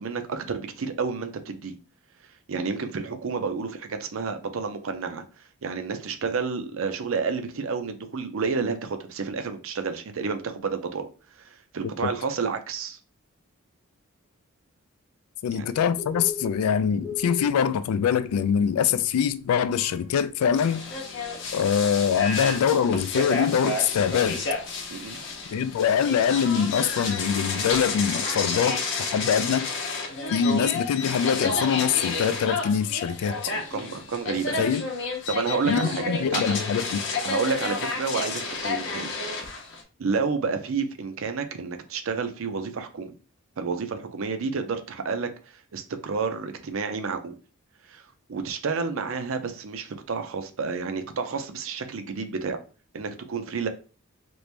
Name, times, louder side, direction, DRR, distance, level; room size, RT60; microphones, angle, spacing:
voice 1, 0.0-1.8 2.5-5.2 5.6-11.1 11.4-13.0 15.5-15.6 24.9-25.2 33.2-34.7 35.3-36.4 37.2-39.1 40.0-43.1 43.6-45.3 45.7-47.3 47.9-48.0 48.3-52.6 52.9-53.7, right 5 dB, 65° right, 0.5 m, -30 dB
voice 2, 15.4-20.8 21.5-24.4 25.5-29.7 30.3-33.3 34.6-34.8 35.7-37.0, left 7 dB, 85° left, 0.3 m, -24 dB
Bird, 15.5-27.6, left 4 dB, 10° right, 0.7 m, -44 dB
sound 1, 20.5-39.8, left 3 dB, 55° left, 0.7 m, -31 dB
3.0 x 2.5 x 3.2 m
head